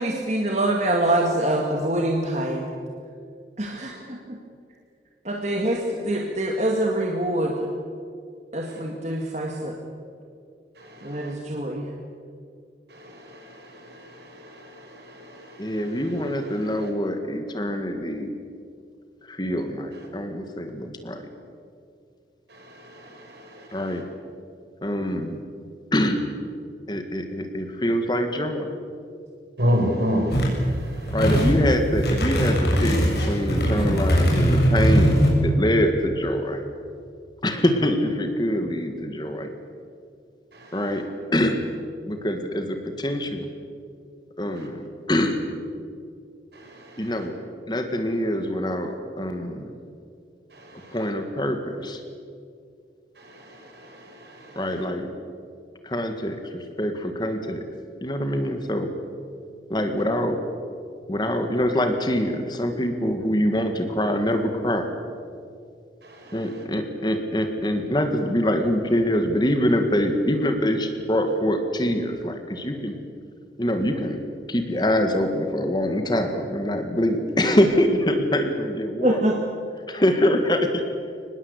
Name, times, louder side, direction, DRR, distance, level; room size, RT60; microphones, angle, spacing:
voice 1, 0.0-2.7 3.6-4.4 5.2-7.6 8.5-9.8 11.0-11.9 79.0-79.4, right 1 dB, 40° right, 2.0 m, -25 dB
voice 2, 10.7-11.4 12.9-16.9 19.9-20.1 22.5-24.0 29.6-31.3 40.5-41.0 44.6-44.7 46.5-47.3 50.5-51.1 53.1-54.9 66.0-66.6, equal, 70° right, 5.5 m, -32 dB
voice 3, 15.6-18.3 19.2-21.2 23.7-24.0 24.8-25.4 25.9-26.2 26.9-28.7 31.1-36.6 37.4-39.5 40.7-41.6 42.1-43.5 44.4-45.4 47.0-47.4 47.7-49.7 50.9-52.0 54.6-55.1 55.8-57.6 58.0-58.9 59.7-60.4 61.1-64.9 66.3-72.9 73.6-74.2 74.5-79.2 79.9-80.8, equal, 25° left, 2.0 m, -24 dB
sound 1, 30.3-30.6 31.0-31.6 31.9-35.3, equal, 70° left, 6.9 m, -20 dB
24.0 x 20.0 x 8.3 m
head